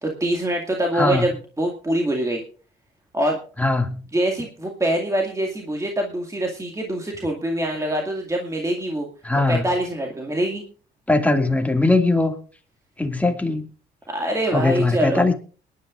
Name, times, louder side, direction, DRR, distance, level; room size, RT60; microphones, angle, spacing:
voice 1, 0.0-2.4 3.1-3.4 4.1-9.1 9.5-10.6 14.1-15.3, right 1 dB, 15° right, 1 dB, 2.1 m, -24 dB
voice 2, 1.0-1.3 3.6-4.0 9.2-9.6 11.1-12.3 13.0-13.6 14.5-15.3, left 2 dB, 5° left, 5 dB, 2.2 m, -20 dB
22.0 x 11.0 x 2.5 m, 0.38 s
cardioid pair, 90°, 20 cm